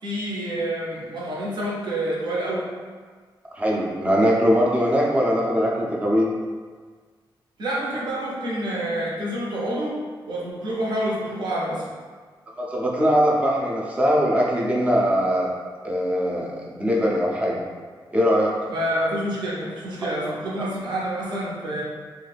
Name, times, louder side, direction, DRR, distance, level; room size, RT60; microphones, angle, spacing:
voice 1, 0.0-2.7 7.6-10.0 10.3-11.8 18.7-21.8, right 1 dB, 65° right, -5 dB, 0.8 m, -27 dB
voice 2, 3.5-6.3 12.6-15.5 15.8-17.6 18.1-18.5 20.0-20.3, equal, 15° right, -4 dB, 0.5 m, -21 dB
2.6 x 2.3 x 3.3 m, 1.6 s
wide cardioid pair, 155°, 8 cm